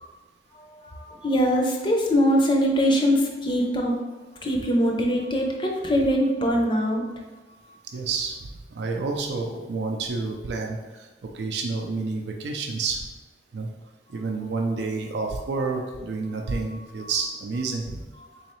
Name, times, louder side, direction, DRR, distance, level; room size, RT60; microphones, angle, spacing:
voice 1, 0.5-3.9 4.4-7.0 17.0-17.1, equal, 25° left, 0 dB, 0.5 m, -22 dB
voice 2, 7.9-11.1 11.3-13.0 13.5-13.7 14.1-18.0, right 4 dB, 75° right, 2 dB, 0.4 m, -29 dB
3.8 x 3.1 x 3.0 m, 1.2 s
head